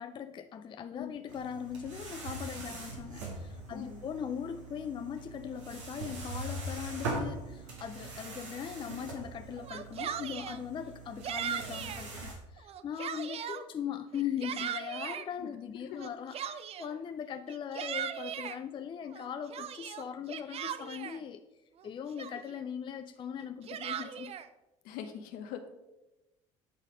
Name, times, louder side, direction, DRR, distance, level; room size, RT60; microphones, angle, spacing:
voice 1, 0.0-21.4 21.8-24.3, left 8 dB, 30° left, 9 dB, 0.4 m, -40 dB
sound 1, 1.3-12.3, right 2 dB, 80° right, 1.7 m, -42 dB
voice 2, 3.7-4.0 24.8-25.7, left 8 dB, 65° left, 7 dB, 0.9 m, -42 dB
Yell, 9.6-10.6 11.2-12.0 12.6-13.6 14.1-15.3 16.0-17.0 17.5-18.6 19.1-21.2 21.8-21.9 22.2-22.6 23.4-24.5, right 9 dB, 40° right, 0.5 m, -38 dB
8.3 x 4.1 x 5.0 m, 1.0 s
hypercardioid pair, 65°, 15 cm